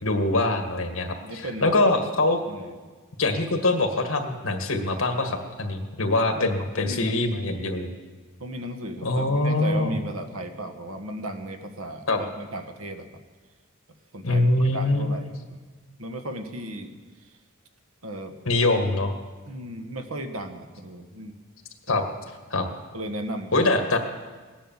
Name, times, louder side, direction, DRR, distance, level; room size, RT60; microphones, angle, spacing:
voice 1, 0.0-2.4 3.2-7.9 9.0-9.9 12.1-12.2 14.2-15.2 18.5-19.1 21.9-22.0 22.5-22.7 23.5-24.0, left 2 dB, 70° left, 5 dB, 1.8 m, -23 dB
voice 2, 1.2-1.7 2.5-2.7 3.3-3.4 6.3-7.7 8.4-13.2 14.1-15.6 16.0-17.0 18.0-18.3 19.5-21.3 21.9-22.0 22.9-23.7, right 1 dB, 85° right, 6 dB, 1.4 m, -35 dB
19.0 x 10.0 x 7.3 m, 1.4 s
head